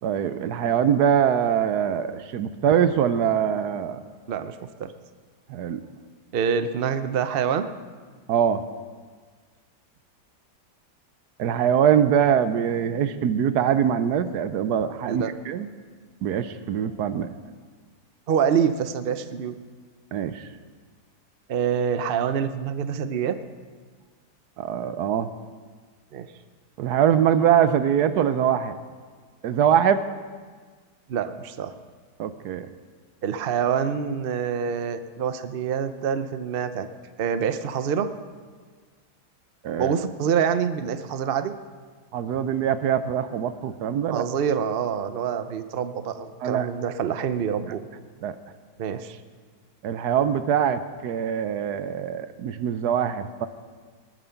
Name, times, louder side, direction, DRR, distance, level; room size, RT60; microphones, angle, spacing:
voice 1, 0.0-4.0 5.5-5.8 8.3-8.6 11.4-15.7 16.2-17.3 20.1-20.4 24.6-25.3 26.8-28.7 29.4-30.0 32.2-32.7 39.6-39.9 42.1-44.2 46.4-46.9 48.2-48.4 49.8-53.5, right 8 dB, 75° right, 12 dB, 1.2 m, -23 dB
voice 2, 4.3-4.9 6.3-7.7 15.1-15.3 18.3-19.5 21.5-23.4 26.1-26.3 31.1-31.7 33.2-36.9 37.2-38.1 39.8-41.5 44.1-47.8 48.8-49.2, right 7 dB, 55° right, 10 dB, 0.6 m, -26 dB
20.0 x 9.1 x 5.8 m, 1.5 s
omnidirectional pair, 1.8 m